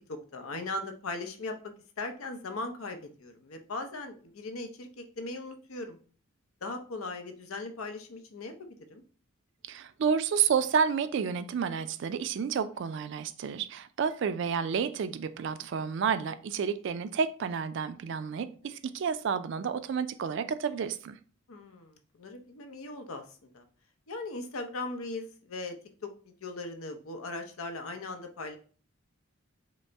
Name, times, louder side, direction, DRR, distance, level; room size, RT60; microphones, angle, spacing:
voice 1, 0.1-1.6 2.0-6.0 6.6-8.5 8.9-9.0 21.5-23.2 23.5-23.6 24.1-25.8 26.0-28.6, left 2 dB, 90° left, 0.7 m, -39 dB
voice 2, 9.6-21.2, right 6 dB, 60° right, 0.3 m, -30 dB
5.1 x 2.0 x 3.4 m
head